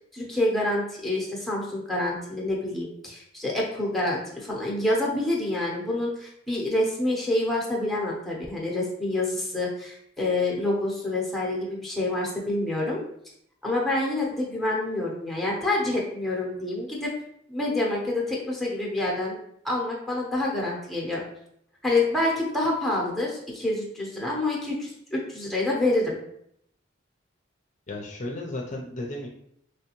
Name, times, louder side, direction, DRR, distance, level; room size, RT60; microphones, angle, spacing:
voice 1, 0.1-13.0 13.6-17.1 17.5-19.4 19.6-21.2 21.8-26.2, left 2 dB, ahead, -2 dB, 0.8 m, -27 dB
voice 2, 27.9-29.3, left 2 dB, 40° left, 0 dB, 0.5 m, -34 dB
3.4 x 3.1 x 2.9 m, 0.72 s
head